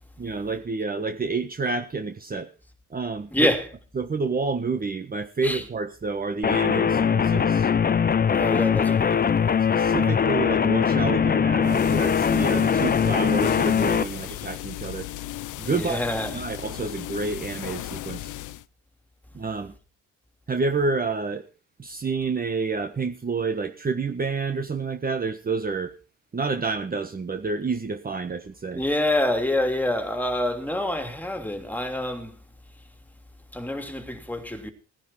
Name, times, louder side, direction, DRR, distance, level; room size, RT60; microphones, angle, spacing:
voice 1, 0.2-2.5 2.9-3.5 3.9-7.7 9.7-15.1 15.6-16.0 16.3-18.3 19.3-19.7 20.5-21.5 21.8-25.9 26.3-28.8, right 4 dB, 30° right, 1.4 m, -29 dB
voice 2, 3.3-3.7 5.4-5.6 8.3-9.2 15.6-16.4 28.7-32.3 33.5-34.7, left 1 dB, 5° left, 3.0 m, -26 dB
sound 1, 6.4-14.0, left 7 dB, 30° left, 0.8 m, -21 dB
sound 2, 11.6-18.6, left 15 dB, 80° left, 0.8 m, -36 dB
17.5 x 10.5 x 4.4 m
cardioid pair, 90°, 30 cm